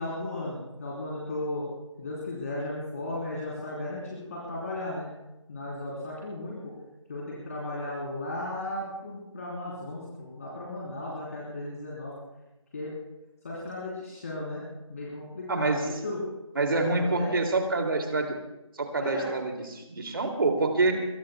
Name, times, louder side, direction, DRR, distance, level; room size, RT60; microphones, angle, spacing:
voice 1, 0.0-1.7 2.0-5.1 5.5-6.7 7.1-12.1 12.7-12.9 13.4-14.6 14.9-16.2 16.7-17.3 19.0-19.3 20.7-20.9, left 2 dB, 30° left, -6 dB, 3.7 m, -35 dB
voice 2, 15.5-15.8 16.6-18.3 18.7-20.9, right 3 dB, 40° right, 3 dB, 2.6 m, -26 dB
24.0 x 21.0 x 2.3 m, 0.96 s
figure-of-eight pair, 170°, 17 cm